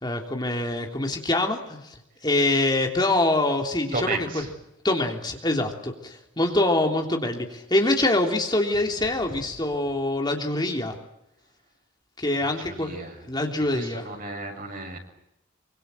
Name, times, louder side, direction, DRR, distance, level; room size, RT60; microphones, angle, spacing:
voice 1, 0.0-4.4 4.8-10.9 12.2-12.9 13.3-14.0, left 2 dB, 25° left, 2 dB, 3.3 m, -25 dB
voice 2, 3.9-4.5 12.4-13.2 13.7-15.0, right 3 dB, 45° right, 3 dB, 7.4 m, -33 dB
26.0 x 25.0 x 7.9 m, 0.82 s
head